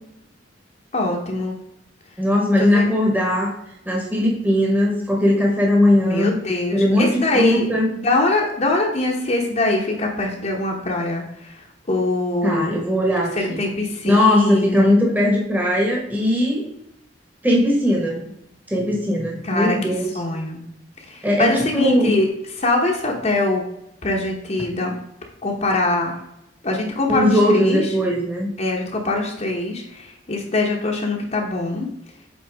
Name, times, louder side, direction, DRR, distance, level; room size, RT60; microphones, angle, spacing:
voice 1, 0.9-1.6 2.6-2.9 6.0-7.7 8.0-12.7 13.4-14.9 19.4-20.6 21.0-23.6 24.0-24.9 25.4-26.2 26.6-27.9 28.6-31.9, left 2 dB, 35° left, 0 dB, 1.0 m, -23 dB
voice 2, 2.2-3.5 3.8-6.4 6.7-7.9 12.4-13.6 14.0-16.7 17.4-18.2 18.7-20.1 21.2-22.2 27.1-28.5, left 1 dB, 10° right, -1 dB, 1.3 m, -19 dB
7.9 x 4.4 x 3.5 m, 0.82 s
head